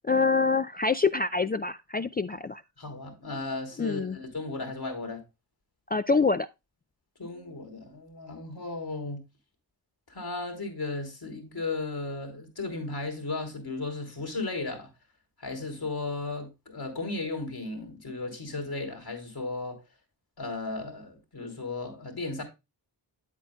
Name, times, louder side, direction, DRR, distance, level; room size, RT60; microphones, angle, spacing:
voice 1, 0.0-2.6 3.8-4.2 5.9-6.5, left 4 dB, 25° left, 0.3 m, -25 dB
voice 2, 2.8-5.2 7.2-9.2 10.1-14.9 15.4-19.8 20.4-22.4, left 3 dB, 60° left, 3.3 m, -35 dB
8.6 x 8.2 x 2.3 m
cardioid pair, 55°, 43 cm